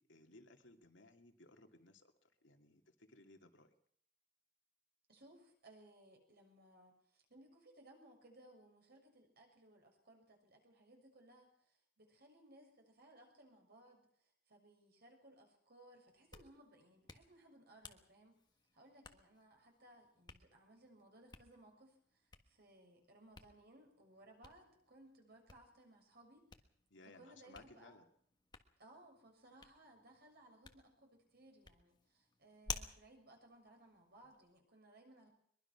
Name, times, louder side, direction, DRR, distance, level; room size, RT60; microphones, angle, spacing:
voice 1, 0.0-3.7 26.9-28.0, left 2 dB, 65° left, 5 dB, 2.5 m, -61 dB
voice 2, 5.1-18.4 18.7-26.5 27.0-28.0 28.8-35.3, right 1 dB, 55° right, 2 dB, 6.7 m, -63 dB
Hands, 16.1-34.6, left 4 dB, 20° left, 1.5 m, -55 dB
22.5 x 22.5 x 6.0 m, 0.64 s
head